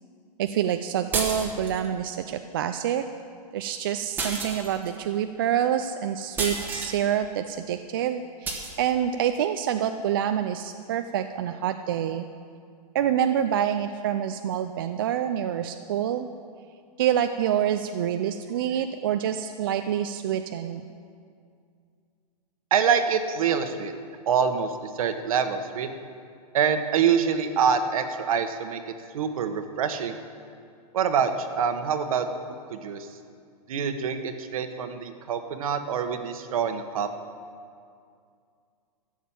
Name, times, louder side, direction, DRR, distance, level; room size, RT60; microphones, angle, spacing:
voice 1, 0.4-3.0 3.5-12.3 12.9-16.3 17.0-20.8, right 10 dB, 35° right, 7 dB, 0.4 m, -27 dB
sound 1, 1.1-1.9 4.2-5.0 6.4-7.0 8.4-8.7, right 3 dB, 10° right, 1.1 m, -30 dB
voice 2, 22.7-23.9 24.3-25.9 26.5-28.8 29.1-30.1 30.9-33.1 33.7-37.1, right 7 dB, 55° right, 8 dB, 1.2 m, -25 dB
13.5 x 7.3 x 8.6 m, 2.3 s
hypercardioid pair, 165°, 21 cm